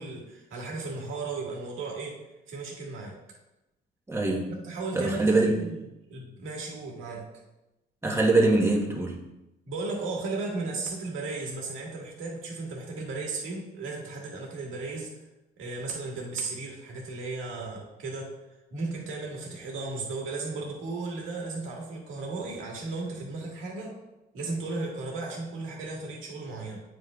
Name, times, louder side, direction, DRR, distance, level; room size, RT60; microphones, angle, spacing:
voice 1, 0.0-2.1 2.5-3.1 4.5-5.8 6.1-7.2 9.7-15.1 15.6-18.3 18.7-23.9 24.3-26.8, right 3 dB, 85° right, -1 dB, 1.9 m, -35 dB
voice 2, 4.1-4.5 4.9-5.5 8.0-9.2, right 2 dB, 15° right, -1 dB, 1.3 m, -23 dB
9.0 x 5.4 x 2.4 m, 0.95 s
cardioid pair, 90°, 20 cm